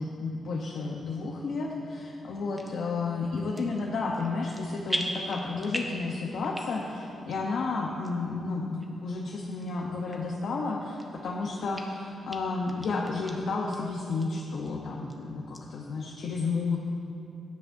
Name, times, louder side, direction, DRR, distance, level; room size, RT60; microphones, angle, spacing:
voice 1, 0.0-16.8, left 3 dB, 70° left, -2 dB, 0.9 m, -32 dB
sound 1, 2.6-2.8 3.4-3.9 4.1-4.6 4.9-6.0 6.4-6.9 7.3-7.4 8.0-8.1 8.8-8.9 9.6-9.7 10.1-10.2 10.7-11.3 11.7-11.8 12.3-12.4 12.7-13.3 13.7-13.8 14.2-14.3 14.7-15.1 15.5-15.6, equal, 5° right, 0.9 m, -36 dB
16.5 x 10.5 x 2.7 m, 2.7 s
wide cardioid pair, 150°, 0 cm